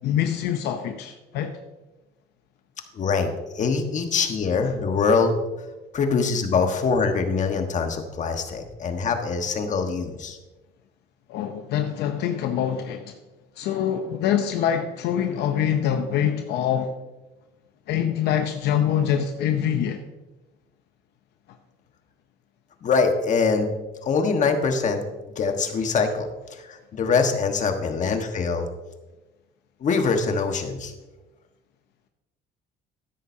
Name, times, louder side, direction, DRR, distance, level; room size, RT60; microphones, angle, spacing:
voice 1, 0.0-1.5 11.3-13.2 13.6-16.9 17.9-20.0 28.0-28.1, left 9 dB, 80° left, 6 dB, 0.7 m, -25 dB
voice 2, 2.9-5.4 5.9-10.4 22.8-23.7 24.0-25.0 25.3-28.7 29.8-30.9, left 4 dB, 45° left, 5 dB, 1.4 m, -23 dB
13.0 x 10.0 x 2.8 m, 1.1 s
cardioid pair, 110°, 17 cm